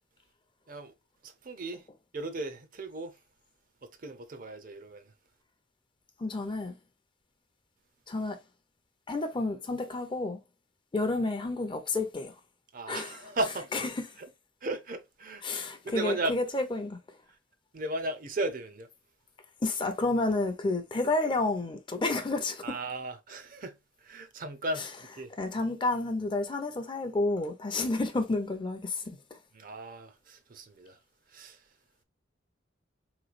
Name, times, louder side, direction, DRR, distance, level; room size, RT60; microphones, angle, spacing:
voice 1, 1.2-1.9 2.1-3.2 3.8-5.1 12.7-13.7 14.2-14.3 14.6-15.4 15.9-16.4 17.3-17.4 17.7-18.9 22.6-24.9 25.2-25.3 29.5-31.0 31.3-31.6, right 2 dB, 45° right, 0.5 m, -36 dB
voice 2, 6.2-6.8 8.1-8.4 9.1-10.4 10.9-12.4 12.9-13.2 13.7-14.0 15.4-17.0 19.6-22.7 25.4-29.4, left 2 dB, 25° left, 0.5 m, -30 dB
3.5 x 3.0 x 2.4 m
head